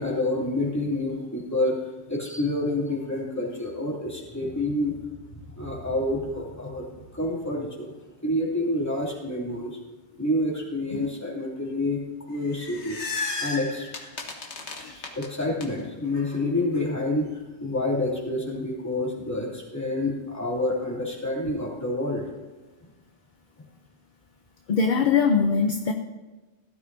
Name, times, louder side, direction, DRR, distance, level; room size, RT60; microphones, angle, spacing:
voice 1, 0.0-1.8 2.1-4.9 5.3-7.9 8.2-9.8 10.2-12.0 12.3-13.0 13.4-13.9 14.9-22.2 23.6-23.7, left 1 dB, 15° left, -4 dB, 2.8 m, -28 dB
sound 1, 12.3-15.7, left 3 dB, 85° left, 1.6 m, -34 dB
voice 2, 24.7-25.9, left 5 dB, 50° left, 5 dB, 0.8 m, -22 dB
17.0 x 12.0 x 2.7 m, 1.2 s
omnidirectional pair, 1.1 m